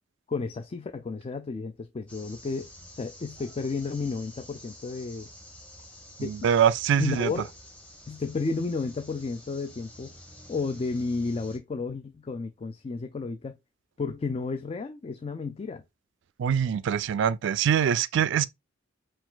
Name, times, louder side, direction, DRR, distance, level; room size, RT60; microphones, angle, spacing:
voice 1, 0.3-5.3 6.2-6.5 7.0-7.5 8.1-10.2 10.5-13.6 14.0-15.8, left 4 dB, 30° left, 0.3 m, -32 dB
sound 1, 2.1-11.6, left 1 dB, 5° left, 1.4 m, -49 dB
voice 2, 6.2-7.3 16.4-18.4, right 8 dB, 65° right, 0.3 m, -24 dB
4.7 x 2.5 x 3.7 m
head